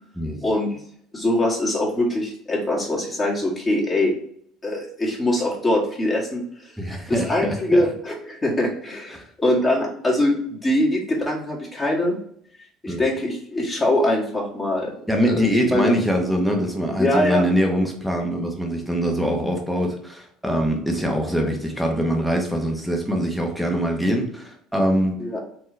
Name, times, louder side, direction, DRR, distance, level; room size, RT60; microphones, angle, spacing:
voice 1, 0.4-0.8 1.1-4.1 4.6-6.4 7.1-9.1 9.4-12.2 12.8-14.9 15.2-15.9 17.0-17.5 21.4-21.5 25.2-25.4, left 1 dB, 25° left, -3 dB, 1.8 m, -22 dB
voice 2, 6.8-7.8 9.1-9.2 12.9-13.1 15.1-25.2, equal, ahead, 1 dB, 1.2 m, -23 dB
4.5 x 3.0 x 3.2 m, 0.66 s
supercardioid pair, 80°, 0 cm